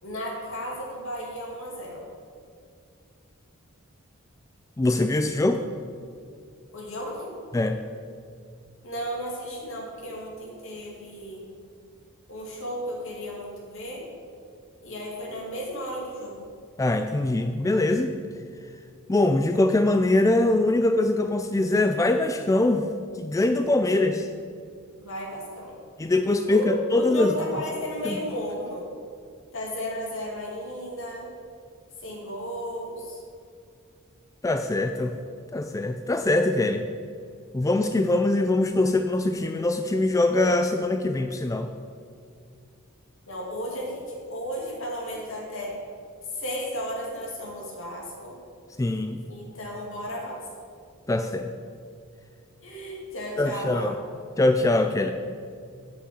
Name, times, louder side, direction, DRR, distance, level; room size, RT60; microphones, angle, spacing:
voice 1, 0.0-2.0 6.7-7.3 8.8-11.4 12.3-14.0 14.8-16.4 25.0-25.8 26.5-28.9 29.5-31.3 32.0-33.2 43.3-45.7 46.3-48.3 49.3-50.4 52.6-53.9, equal, 65° left, -2 dB, 2.6 m, -34 dB
voice 2, 4.8-5.6 7.5-7.8 16.8-18.1 19.1-22.9 23.2-24.3 26.0-27.4 28.0-28.2 34.4-35.2 35.5-36.9 37.5-41.7 48.8-49.2 51.1-51.5 53.4-53.9 54.4-55.1, left 2 dB, 15° left, 7 dB, 0.3 m, -23 dB
8.3 x 6.1 x 7.9 m, 2.3 s
head